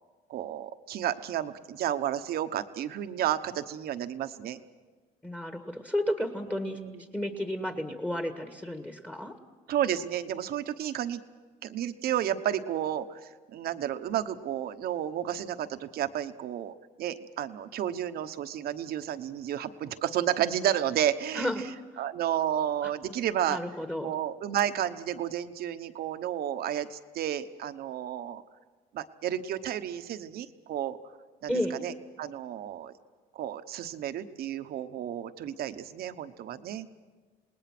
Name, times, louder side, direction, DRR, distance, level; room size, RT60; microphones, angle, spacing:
voice 1, 0.3-4.6 6.5-7.0 9.7-11.2 11.6-21.7 22.0-23.6 24.0-28.4 28.9-31.0 31.4-31.5 31.8-31.9 32.2-32.9 33.3-36.9, right 10 dB, 65° right, 11 dB, 1.1 m, -32 dB
voice 2, 5.2-6.8 7.1-9.4 21.3-21.6 21.9-22.0 22.8-22.9 23.5-24.2 31.5-31.8, equal, 10° left, 6 dB, 1.7 m, -32 dB
28.0 x 19.5 x 6.1 m, 1.4 s
cardioid pair, 110°, 17 cm